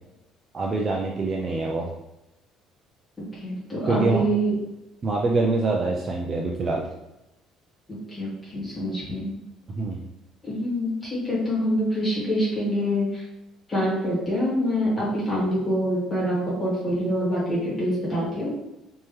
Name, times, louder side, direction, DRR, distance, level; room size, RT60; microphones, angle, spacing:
voice 1, 0.5-1.9 3.9-4.3 5.0-6.9 9.8-10.0, right 3 dB, 25° right, 0 dB, 0.3 m, -25 dB
voice 2, 3.2-4.5 8.1-9.4 10.4-13.2 13.7-18.5, equal, 15° left, -7 dB, 1.4 m, -25 dB
3.5 x 2.9 x 3.0 m, 0.91 s
cardioid pair, 180°, 0 cm